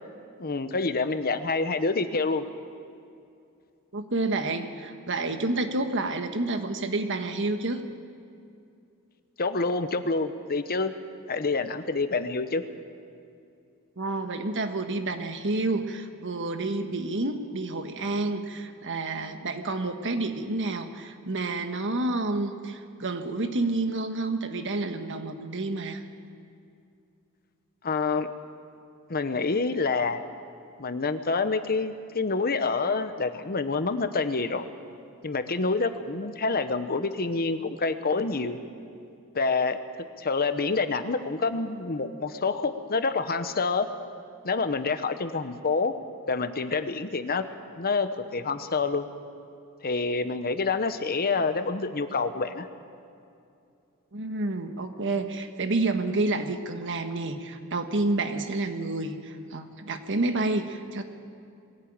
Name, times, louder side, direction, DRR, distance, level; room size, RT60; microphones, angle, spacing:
voice 1, 0.4-2.4 9.4-10.9 11.3-12.6 27.8-28.3 29.1-30.2 30.8-34.7 35.2-38.6 39.3-39.8 40.2-43.9 44.4-45.9 46.3-47.4 47.8-49.1 49.8-52.7, left 4 dB, 45° left, 10 dB, 1.0 m, -27 dB
voice 2, 3.9-7.8 14.0-26.0 54.1-61.0, right 2 dB, 55° right, 7 dB, 1.5 m, -29 dB
22.0 x 16.0 x 8.9 m, 2.5 s
head